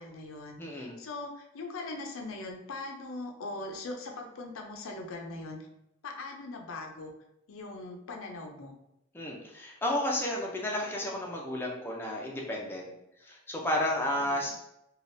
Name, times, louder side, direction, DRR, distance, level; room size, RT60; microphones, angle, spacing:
voice 1, 0.0-5.7 6.0-7.1 7.5-8.7 14.3-14.5, left 2 dB, 85° left, 2 dB, 0.5 m, -41 dB
voice 2, 0.6-1.0 9.1-12.9 13.2-14.5, left 1 dB, 10° left, -2 dB, 0.4 m, -32 dB
3.4 x 2.3 x 2.5 m, 0.85 s
head